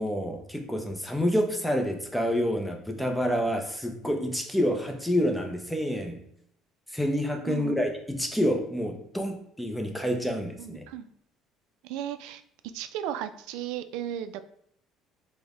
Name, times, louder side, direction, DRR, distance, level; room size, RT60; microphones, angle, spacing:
voice 1, 0.0-6.2 6.9-10.8, equal, ahead, 4 dB, 0.5 m, -28 dB
voice 2, 7.5-7.8 10.6-11.1 11.8-12.4 12.7-14.4, right 10 dB, 85° right, 11 dB, 0.3 m, -35 dB
5.1 x 2.1 x 3.5 m, 0.70 s
cardioid pair, 165°, 0 cm